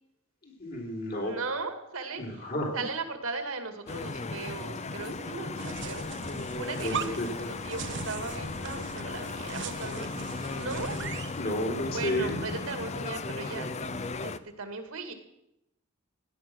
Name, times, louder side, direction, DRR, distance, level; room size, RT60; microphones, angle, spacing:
voice 1, 0.4-1.3 2.2-2.8 6.8-7.5 11.4-12.4, left 1 dB, 50° left, 1 dB, 3.4 m, -32 dB
voice 2, 1.2-6.0 6.4-11.0 11.9-13.7 14.2-15.1, right 3 dB, 75° right, 6 dB, 2.2 m, -38 dB
sound 1, 3.9-14.4, left 3 dB, 30° left, 0.6 m, -36 dB
sound 2, 5.6-11.4, right 7 dB, 60° right, 0.9 m, -40 dB
16.5 x 11.0 x 6.3 m, 0.85 s
head